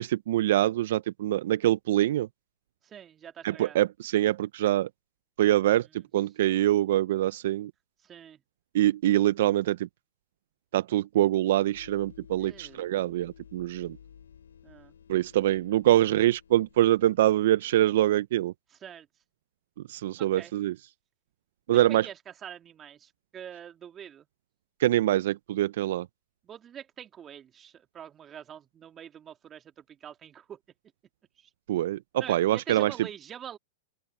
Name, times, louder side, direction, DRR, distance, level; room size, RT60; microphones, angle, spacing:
voice 1, 0.0-2.3 3.4-4.9 5.4-7.7 8.7-9.9 10.7-14.0 15.1-18.5 19.9-20.7 21.7-22.1 24.8-26.1 31.7-32.9, right 13 dB, 65° right, 0.7 m, -24 dB
voice 2, 2.8-3.8 8.0-8.4 12.4-12.8 14.6-14.9 18.7-19.1 20.2-20.5 21.7-24.3 26.4-30.6 31.4-31.5 32.2-33.6, right 9 dB, 25° right, 2.8 m, -45 dB
sound 1, 11.7-17.6, left 8 dB, 80° left, 5.9 m, -54 dB
open air
hypercardioid pair, 115°, 0 cm